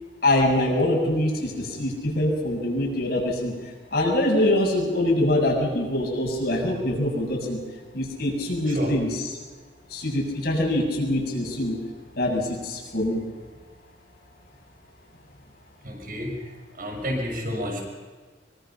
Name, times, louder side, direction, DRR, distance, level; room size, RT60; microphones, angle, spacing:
voice 1, 0.2-3.5 3.9-7.6 7.9-9.4 9.9-11.8 12.2-13.2, left 1 dB, 55° left, -1 dB, 7.3 m, -24 dB
voice 2, 15.8-16.5 16.8-17.8, equal, 50° right, 2 dB, 6.1 m, -30 dB
25.0 x 23.5 x 5.8 m, 1.5 s
head